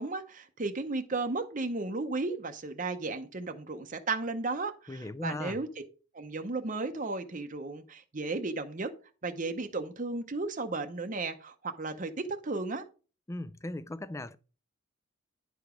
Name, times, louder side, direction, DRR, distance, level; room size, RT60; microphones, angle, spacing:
voice 1, 0.0-5.7 6.1-8.9 9.2-12.8, right 3 dB, 35° right, 0.7 m, -34 dB
voice 2, 4.9-5.6 13.3-14.4, left 1 dB, 15° left, 0.4 m, -38 dB
10.5 x 4.9 x 5.0 m
head